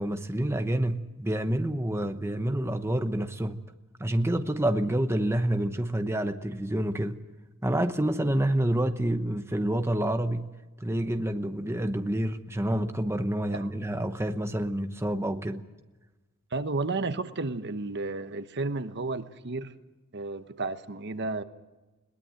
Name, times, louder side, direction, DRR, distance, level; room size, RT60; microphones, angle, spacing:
voice 1, 0.0-3.6 4.0-7.2 7.6-10.5 10.8-15.6, right 1 dB, 10° right, 1.0 m, -28 dB
voice 2, 16.5-19.7 20.1-21.4, right 3 dB, 55° right, 1.1 m, -32 dB
22.0 x 19.0 x 7.8 m
head